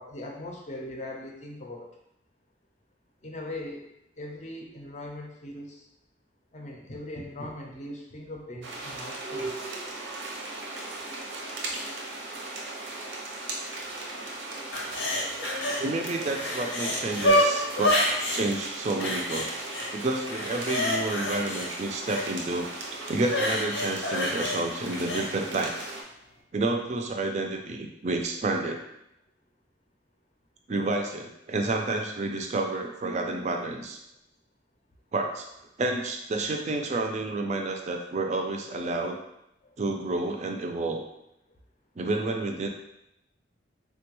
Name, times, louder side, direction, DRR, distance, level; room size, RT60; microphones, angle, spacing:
voice 1, 0.0-1.9 3.2-3.8 4.2-5.9 6.5-9.6, left 1 dB, 40° left, 0 dB, 0.5 m, -40 dB
sound 1, 8.6-26.0, right 2 dB, 80° right, 0.6 m, -37 dB
sound 2, 14.7-15.8 16.2-18.4 19.0-19.9 20.2-22.3 23.2-25.3 25.8-25.9, left 1 dB, 85° left, 0.7 m, -27 dB
voice 2, 15.8-18.0 18.3-19.5 19.9-22.7 23.1-25.7 26.5-28.8 30.7-34.0 35.1-35.5 35.8-39.2 39.8-41.0 42.0-42.7, right 2 dB, 40° right, 3 dB, 0.4 m, -29 dB
3.6 x 2.2 x 3.0 m, 0.82 s
head